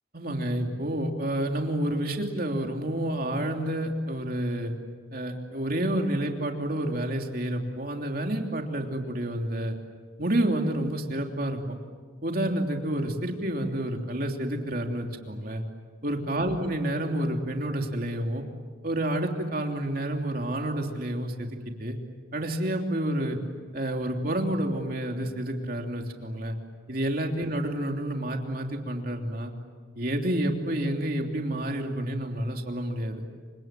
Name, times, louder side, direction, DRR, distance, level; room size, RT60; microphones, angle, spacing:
voice 1, 0.1-4.7 5.1-9.7 10.2-11.6 12.2-15.6 16.0-18.4 18.8-21.5 21.8-22.0 22.3-23.4 23.7-26.6 26.9-29.5 29.9-33.2, right 1 dB, 45° right, 2 dB, 3.1 m, -29 dB
28.5 x 26.0 x 7.6 m, 1.5 s
head